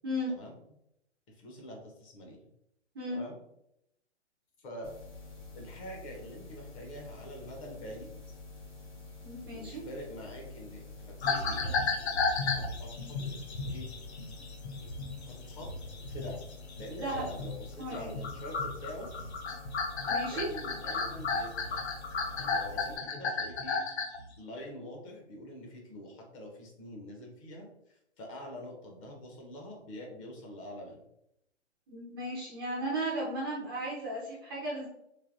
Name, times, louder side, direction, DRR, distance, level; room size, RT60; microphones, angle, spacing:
voice 1, 0.3-0.8 1.3-2.4 3.1-3.3 4.6-4.9 5.5-8.1 9.5-11.7 12.5-13.4 13.7-13.9 15.3-15.7 16.0-16.4 16.7-19.1 20.1-21.8 22.3-23.8 24.4-31.0, equal, 25° left, 0 dB, 0.8 m, -45 dB
sound 1, 4.8-23.0, left 3 dB, 80° left, 1.4 m, -48 dB
voice 2, 9.2-9.8 17.0-17.2 17.8-18.1 20.1-20.5 31.9-34.9, right 1 dB, 20° right, -5 dB, 0.4 m, -35 dB
sound 2, 11.2-17.7 17.9-24.2, left 4 dB, 65° left, 0.7 m, -34 dB
3.2 x 2.7 x 2.5 m, 0.79 s
hypercardioid pair, 135°, 36 cm